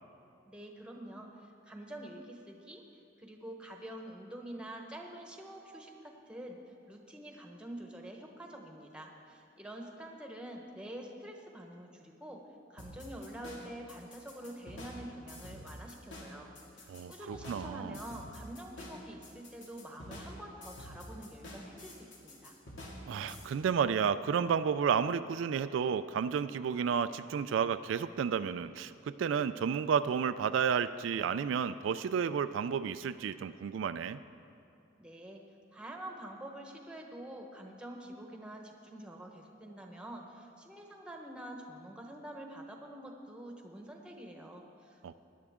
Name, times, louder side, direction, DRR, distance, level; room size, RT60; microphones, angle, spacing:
voice 1, 0.4-2.8 3.2-12.4 12.7-16.5 16.7-22.5 35.0-35.4 35.7-45.1, right 1 dB, 5° right, 1 dB, 1.1 m, -47 dB
sound 1, 12.8-23.4, left 1 dB, 80° left, 2.2 m, -48 dB
voice 2, 16.9-18.0 23.1-34.2 45.0-45.1, right 7 dB, 80° right, 12 dB, 0.3 m, -31 dB
17.0 x 11.0 x 3.6 m, 2.8 s
head